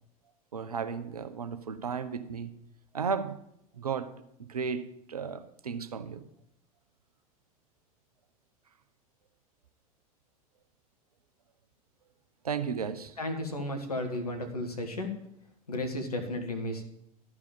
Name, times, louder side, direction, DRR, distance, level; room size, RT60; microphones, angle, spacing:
voice 1, 0.5-2.6 2.9-3.4 3.8-4.1 4.5-6.2 12.4-13.5, right 6 dB, 90° right, 11 dB, 0.7 m, -34 dB
voice 2, 13.2-15.1 15.7-16.8, left 1 dB, 90° left, 5 dB, 1.6 m, -33 dB
12.0 x 4.9 x 7.4 m, 0.77 s
hypercardioid pair, 80°, 19 cm